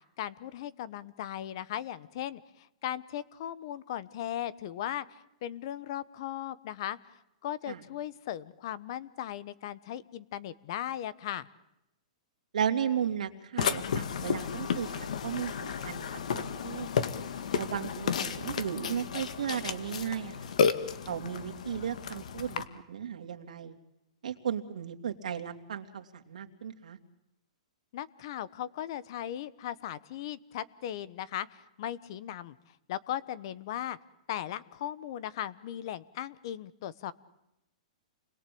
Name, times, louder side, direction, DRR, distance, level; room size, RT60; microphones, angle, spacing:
voice 1, 0.2-11.5 27.9-32.6 32.9-34.0 34.3-37.1, left 11 dB, 40° left, 19 dB, 1.1 m, -38 dB
voice 2, 12.5-16.1 16.4-16.9 17.5-20.3 21.1-22.6 22.9-23.7 24.2-27.0, right 8 dB, 75° right, 5 dB, 2.9 m, -35 dB
Burping eructation, 13.6-22.6, left 7 dB, 65° left, 2.0 m, -32 dB
29.5 x 22.0 x 8.7 m, 0.90 s
hypercardioid pair, 175°, 4 cm